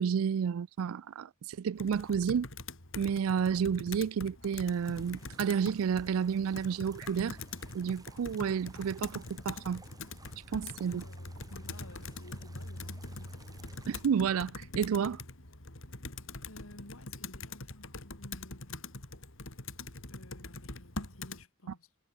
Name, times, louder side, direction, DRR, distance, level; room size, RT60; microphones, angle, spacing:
voice 1, 0.0-2.5 3.0-7.4 7.7-9.8 10.5-11.0 13.9-15.2, right 7 dB, 80° right, 0.4 m, -31 dB
Computer keyboard, 1.8-21.4, left 3 dB, 65° left, 4.6 m, -44 dB
sound 1, 4.6-14.1, right 3 dB, 20° right, 4.9 m, -58 dB
voice 2, 10.5-13.3 16.4-18.8 20.1-21.9, left 1 dB, 85° left, 4.0 m, -54 dB
head